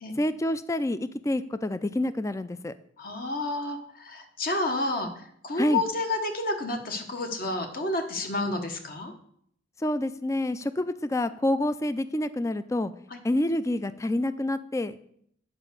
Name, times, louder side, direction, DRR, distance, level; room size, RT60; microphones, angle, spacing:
voice 1, 0.2-2.7 5.6-5.8 9.8-12.9 13.2-15.0, left 1 dB, 15° left, 13 dB, 0.3 m, -27 dB
voice 2, 3.0-9.1 13.1-13.2, left 2 dB, 50° left, 4 dB, 1.1 m, -30 dB
9.0 x 4.7 x 6.7 m, 0.67 s
head